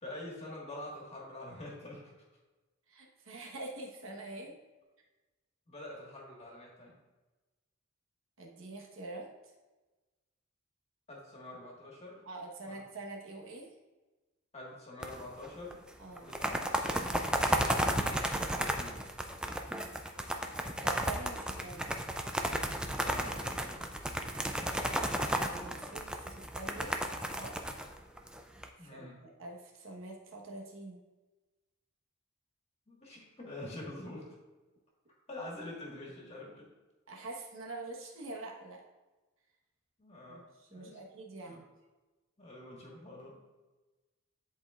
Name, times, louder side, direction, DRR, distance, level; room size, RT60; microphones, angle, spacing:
voice 1, 0.0-2.1 5.7-7.0 11.1-12.2 12.6-12.8 14.5-15.8 16.2-19.0 23.0-23.9 28.8-29.2 32.9-34.4 35.3-36.7 40.0-41.0 41.5-41.6 42.4-43.4, left 1 dB, 30° left, -2 dB, 1.6 m, -46 dB
voice 2, 2.9-4.6 8.4-9.3 12.2-13.7 16.0-16.3 20.8-22.0 25.4-26.9 27.4-27.5 28.8-31.0 37.1-38.8 40.3-40.4 40.7-41.6, right 2 dB, 65° right, 0 dB, 1.2 m, -45 dB
sound 1, 15.0-15.7 16.2-28.6, right 1 dB, 5° right, 0.3 m, -33 dB
10.5 x 4.3 x 2.4 m, 1.2 s
head